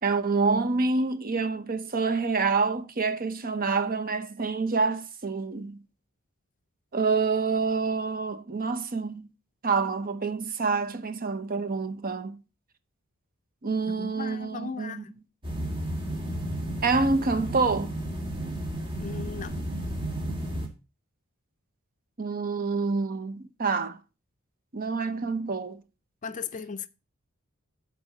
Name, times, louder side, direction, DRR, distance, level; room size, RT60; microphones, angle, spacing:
voice 1, 0.0-5.8 6.9-9.3 9.6-12.4 13.6-15.0 16.8-18.0 22.2-24.0 24.7-25.8, right 4 dB, 45° right, 0.8 m, -27 dB
voice 2, 13.9-15.2 19.0-19.6 26.2-26.9, left 5 dB, 35° left, 0.5 m, -37 dB
sound 1, 15.4-20.7, right 1 dB, 25° right, 2.1 m, -33 dB
8.7 x 4.1 x 6.5 m
head